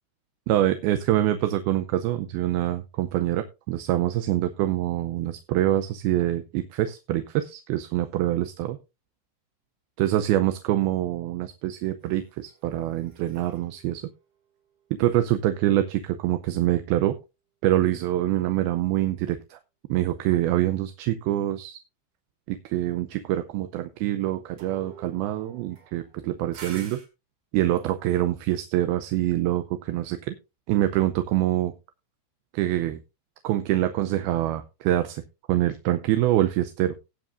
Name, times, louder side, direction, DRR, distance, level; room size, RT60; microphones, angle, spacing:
voice 1, 0.5-8.8 10.0-14.0 15.0-17.2 17.6-19.6 19.9-21.8 22.5-27.0 27.5-30.4 30.7-31.7 32.5-33.0 33.4-35.2 35.5-37.0, right 13 dB, 80° right, 9 dB, 2.4 m, -25 dB
sound 1, 12.0-15.5 24.6-27.1, right 5 dB, 55° right, 3.4 m, -49 dB
18.5 x 7.6 x 2.5 m, 0.27 s
omnidirectional pair, 4.7 m